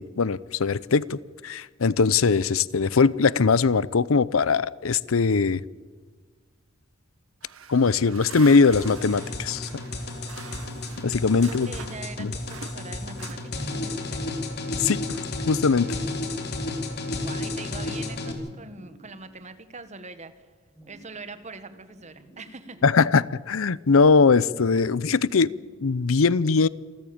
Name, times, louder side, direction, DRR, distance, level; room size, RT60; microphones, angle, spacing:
voice 1, 0.0-5.6 7.7-9.7 11.0-11.7 12.2-12.3 14.8-15.0 15.5-15.9 22.8-25.5 25.8-26.7, left 4 dB, 85° left, 20 dB, 0.6 m, -21 dB
sound 1, 7.4-12.1 12.4-13.9, right 6 dB, 85° right, 1.3 m, -45 dB
sound 2, 8.7-18.3, left 2 dB, 55° left, 3.1 m, -32 dB
sound 3, 9.5-11.1 12.1-13.8 14.9-16.8 17.8-19.3 20.7-21.3 21.6-23.2 24.2-25.8, right 2 dB, ahead, 5.3 m, -53 dB
voice 2, 11.4-14.3 17.2-20.3 20.9-22.9, right 3 dB, 35° right, 11 dB, 1.6 m, -42 dB
27.5 x 14.5 x 8.7 m, 1.5 s
head